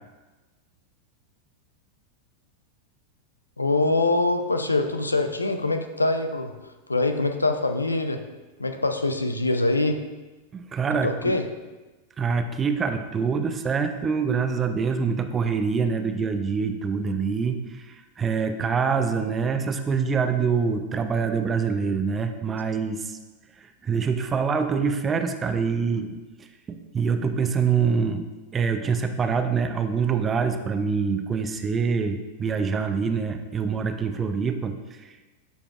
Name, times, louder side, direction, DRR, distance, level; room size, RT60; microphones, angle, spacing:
voice 1, 3.6-6.5 6.9-8.2 8.6-10.0 11.0-11.4, left 2 dB, 80° left, 7 dB, 0.5 m, -24 dB
voice 2, 10.5-11.3 12.2-23.2 23.6-28.3 28.5-35.3, right 5 dB, 20° right, 8 dB, 0.6 m, -25 dB
11.5 x 5.3 x 2.4 m, 1.2 s
figure-of-eight pair, 90°, 0 cm